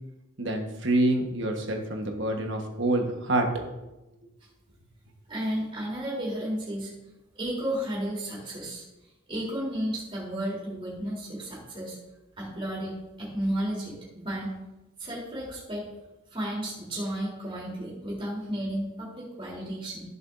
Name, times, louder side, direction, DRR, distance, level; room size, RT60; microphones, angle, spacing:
voice 1, 0.4-3.5, right 1 dB, 60° right, 2 dB, 1.4 m, -26 dB
voice 2, 5.3-6.9 7.4-8.8 9.3-12.0 12.4-14.6 15.0-15.9 16.3-20.0, right 1 dB, 25° right, -5 dB, 3.6 m, -33 dB
16.0 x 7.0 x 2.7 m, 1.0 s
head